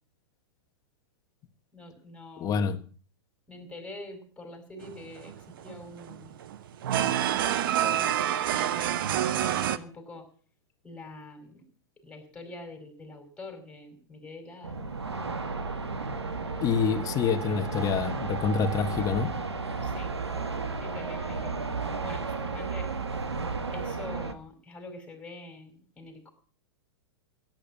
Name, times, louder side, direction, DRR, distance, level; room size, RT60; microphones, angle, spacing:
voice 1, 1.7-2.9 3.5-6.4 6.9-10.3 10.8-11.6 12.0-14.8 19.8-20.1 20.8-21.7 22.0-22.9 23.7-26.3, left 2 dB, 10° left, 4 dB, 5.2 m, -45 dB
voice 2, 2.4-2.8 16.6-19.3, left 6 dB, 25° left, 9 dB, 1.7 m, -27 dB
sound 1, 4.8-9.8, right 11 dB, 55° right, 1.1 m, -28 dB
sound 2, 14.6-24.3, right 4 dB, 80° right, 1.9 m, -33 dB
17.0 x 9.1 x 7.4 m, 0.43 s
figure-of-eight pair, 105°, 14 cm